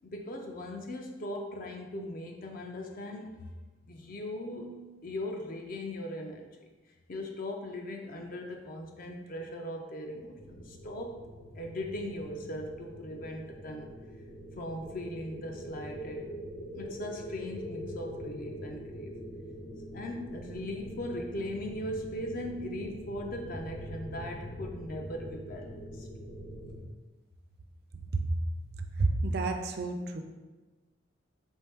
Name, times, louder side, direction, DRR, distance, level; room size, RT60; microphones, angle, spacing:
voice 1, 0.0-3.5 3.9-6.5 7.1-11.2 11.6-13.9 14.6-16.2 16.7-19.2 19.9-26.1, left 1 dB, 45° left, 2 dB, 0.4 m, -39 dB
sound 1, 10.3-26.8, equal, 85° left, 1.1 m, -44 dB
voice 2, 29.0-30.2, right 3 dB, 55° right, 5 dB, 0.4 m, -29 dB
4.4 x 3.1 x 3.4 m, 1.2 s
head